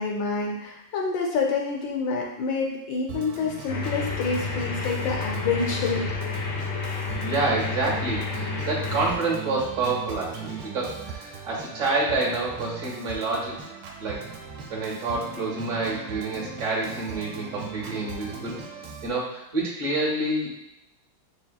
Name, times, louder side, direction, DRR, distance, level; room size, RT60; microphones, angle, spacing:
voice 1, 0.0-6.0, left 4 dB, 75° left, 0 dB, 1.1 m, -27 dB
Organ, 3.1-19.1, right 6 dB, 80° right, 1.5 m, -39 dB
sound 1, 3.7-9.1, left 5 dB, 90° left, 0.8 m, -30 dB
voice 2, 7.2-13.6 14.0-14.3 14.7-18.6 19.0-20.5, right 3 dB, 45° right, -5 dB, 1.2 m, -28 dB
6.2 x 2.3 x 2.2 m, 0.88 s
omnidirectional pair, 2.4 m